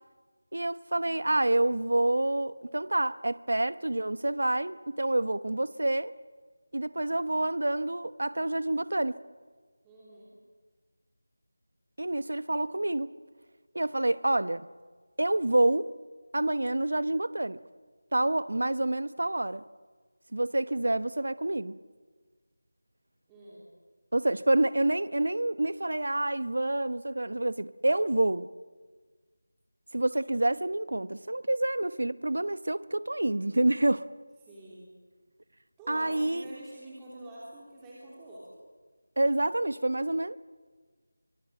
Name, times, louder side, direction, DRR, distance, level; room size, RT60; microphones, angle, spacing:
voice 1, 0.5-6.1 6.7-9.2 12.0-13.1 13.7-14.7 15.2-15.9 16.3-17.6 18.1-19.6 20.3-21.8 24.1-28.5 29.9-34.1 35.9-36.5 39.2-40.4, right 1 dB, 75° right, 1.0 m, -28 dB
voice 2, 9.8-10.3 23.3-23.6 34.4-34.9 35.8-38.4, right 1 dB, 10° right, 3.2 m, -46 dB
24.0 x 22.0 x 7.7 m
figure-of-eight pair, 170°, 0 cm